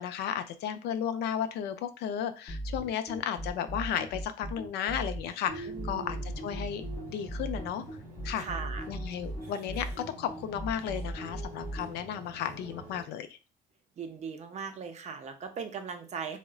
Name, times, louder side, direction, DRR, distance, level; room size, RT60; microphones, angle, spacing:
voice 1, 0.0-6.2 6.4-6.8 7.1-7.8 8.2-8.5 8.9-13.3, left 9 dB, 75° left, 9 dB, 0.4 m, -34 dB
sound 1, 2.5-11.9, right 1 dB, 30° left, 0.7 m, -37 dB
sound 2, 5.5-13.1, right 3 dB, 20° right, 0.9 m, -46 dB
voice 2, 5.7-6.2 8.4-8.9 14.0-16.4, right 6 dB, 40° right, 6 dB, 0.5 m, -39 dB
3.7 x 2.1 x 2.3 m, 0.32 s
cardioid pair, 110°, 17 cm